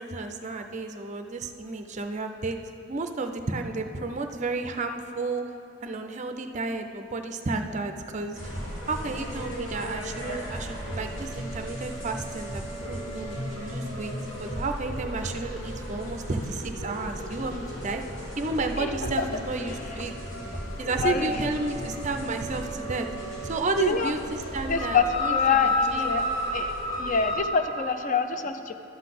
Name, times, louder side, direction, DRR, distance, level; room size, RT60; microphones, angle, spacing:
voice 1, 0.0-2.6 2.9-5.5 5.8-8.5 8.9-12.6 12.9-18.0 18.4-20.1 20.8-23.1 23.4-26.2, right 3 dB, 35° right, 6 dB, 0.5 m, -32 dB
sound 1, 8.3-27.4, left 1 dB, 75° left, 2.3 m, -33 dB
voice 2, 21.0-21.3 23.8-24.1 24.7-26.2 26.5-26.7 27.0-28.7, left 5 dB, 40° left, 8 dB, 0.4 m, -26 dB
11.5 x 3.9 x 7.6 m, 2.8 s
head